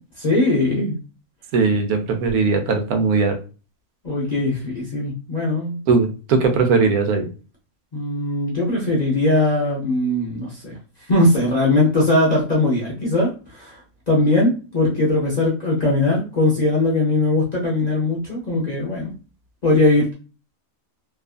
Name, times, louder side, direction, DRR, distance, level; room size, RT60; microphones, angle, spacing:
voice 1, 0.2-1.0 4.0-5.8 7.9-10.7 11.1-13.8 14.1-19.1 19.6-20.1, left 2 dB, 40° left, -3 dB, 0.6 m, -20 dB
voice 2, 1.5-3.4 5.9-7.3, right 4 dB, 90° right, 5 dB, 1.1 m, -19 dB
2.7 x 2.4 x 2.4 m, 0.35 s
omnidirectional pair, 1.5 m